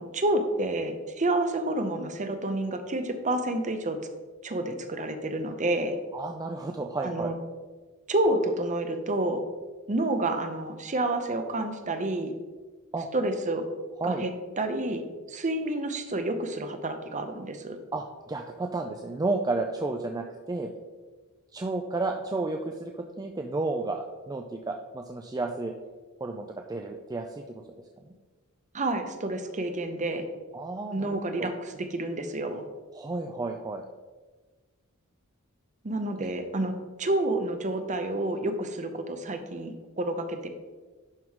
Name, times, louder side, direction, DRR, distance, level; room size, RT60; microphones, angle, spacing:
voice 1, 0.0-4.0 4.4-6.0 7.0-7.3 8.1-9.4 9.9-12.3 13.1-13.7 14.0-14.3 14.6-15.0 15.3-17.8 28.7-30.3 30.9-32.6 35.8-40.5, right 1 dB, 35° right, 7 dB, 0.8 m, -29 dB
voice 2, 6.1-7.3 12.9-13.1 14.0-14.2 17.9-20.7 21.5-22.9 23.2-25.7 26.2-27.6 30.5-31.5 32.9-33.9, right 3 dB, 15° right, 3 dB, 0.4 m, -32 dB
11.0 x 3.8 x 4.7 m, 1.3 s
head